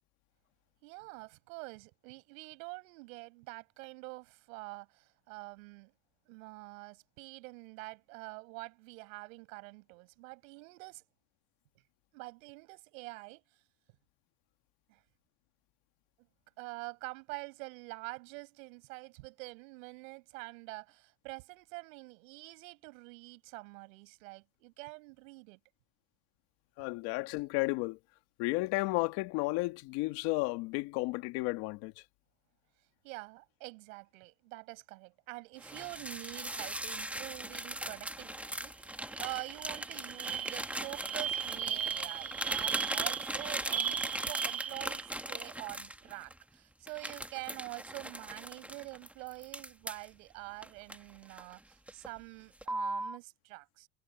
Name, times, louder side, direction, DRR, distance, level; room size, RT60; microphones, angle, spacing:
voice 1, 0.8-5.9 6.3-11.0 12.1-13.4 14.9-15.0 16.6-25.6 33.0-44.0 44.3-53.9, right 27 dB, 90° right, 5.9 m, -46 dB
voice 2, 26.8-28.0 28.4-31.9, left 22 dB, 75° left, 1.9 m, -33 dB
sound 1, 35.6-46.4 46.9-50.1 50.6-51.5 51.9-52.2 52.6-53.2, right 1 dB, 5° right, 1.5 m, -39 dB
sound 2, 38.6-38.7 38.9-45.3, right 8 dB, 40° right, 7.6 m, -37 dB
supercardioid pair, 105°, 39 cm